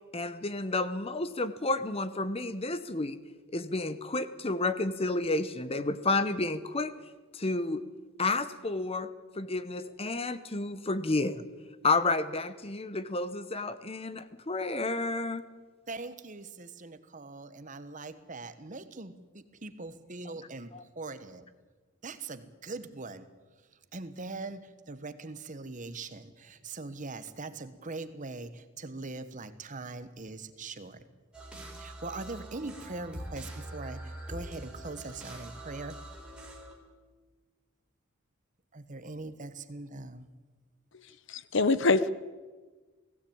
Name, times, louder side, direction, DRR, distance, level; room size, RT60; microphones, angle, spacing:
voice 1, 0.1-3.2 3.5-6.9 7.3-7.8 8.2-9.1 9.4-11.4 11.8-15.4, left 2 dB, 30° left, 13 dB, 0.9 m, -30 dB
voice 2, 15.9-21.5 22.0-23.3 23.9-31.1 31.8-36.0 38.7-40.3, right 3 dB, 35° right, 12 dB, 1.2 m, -41 dB
sound 1, 31.3-36.7, right 1 dB, 5° right, 3.6 m, -44 dB
voice 3, 41.3-42.1, left 3 dB, 60° left, 16 dB, 0.8 m, -24 dB
19.0 x 16.0 x 8.7 m, 1.3 s
head